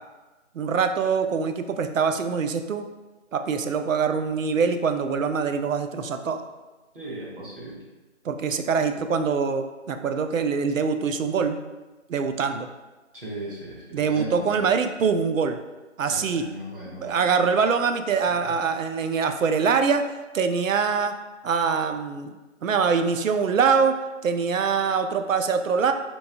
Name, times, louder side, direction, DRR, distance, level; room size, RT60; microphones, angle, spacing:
voice 1, 0.5-2.9 3.3-6.4 8.2-11.6 12.1-12.7 13.9-15.6 16.0-16.5 16.9-20.0 20.3-21.1 21.4-22.3 22.6-24.0 24.2-25.9, right 5 dB, 80° right, 7 dB, 0.5 m, -24 dB
voice 2, 6.9-7.8 13.1-14.7 16.1-17.2 18.4-18.5, right 1 dB, 45° right, -6 dB, 1.1 m, -37 dB
4.3 x 2.9 x 2.7 m, 1.2 s
figure-of-eight pair, 180°, 39 cm